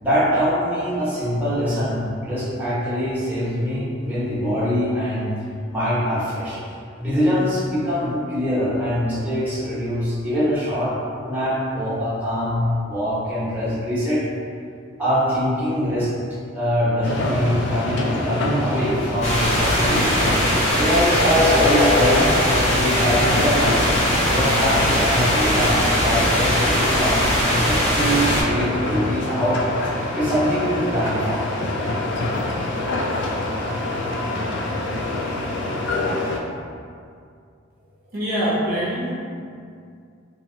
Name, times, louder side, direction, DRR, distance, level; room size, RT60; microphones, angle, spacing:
voice 1, 0.0-5.3 5.7-6.6 7.0-10.9 11.2-14.2 15.0-16.1 16.5-22.4 22.7-24.0 24.2-29.6 30.1-31.4, equal, 10° right, -11 dB, 0.9 m, -23 dB
sound 1, 17.0-36.4, left 2 dB, 60° left, 0.4 m, -25 dB
sound 2, 19.2-28.4, equal, 35° left, 0.7 m, -21 dB
voice 2, 38.1-39.1, equal, 50° right, -8 dB, 0.6 m, -23 dB
2.8 x 2.8 x 2.6 m, 2.3 s
head